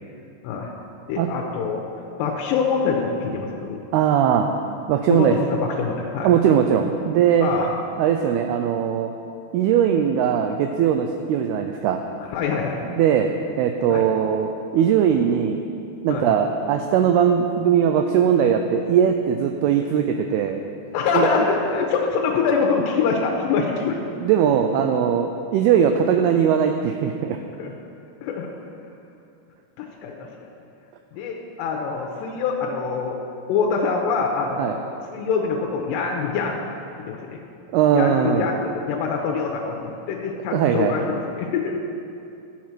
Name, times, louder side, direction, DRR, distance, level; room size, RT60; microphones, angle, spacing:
voice 1, 1.1-1.8 2.2-3.8 5.1-6.3 7.4-7.7 12.3-12.8 13.9-14.1 16.1-16.3 20.9-24.0 27.6-27.7 28.2-28.5 29.8-30.5 31.1-33.2 33.5-34.8 35.1-36.6 37.1-37.4 37.9-41.7, left 5 dB, 85° left, 0 dB, 2.8 m, -24 dB
voice 2, 3.9-4.5 4.9-5.4 6.2-7.5 8.0-9.1 9.5-12.0 12.9-15.6 16.0-20.6 21.1-21.3 24.2-27.4 34.6-34.8 37.7-38.5 40.5-41.0, right 8 dB, 90° right, 5 dB, 2.2 m, -20 dB
11.5 x 7.3 x 6.0 m, 2.6 s
omnidirectional pair, 5.0 m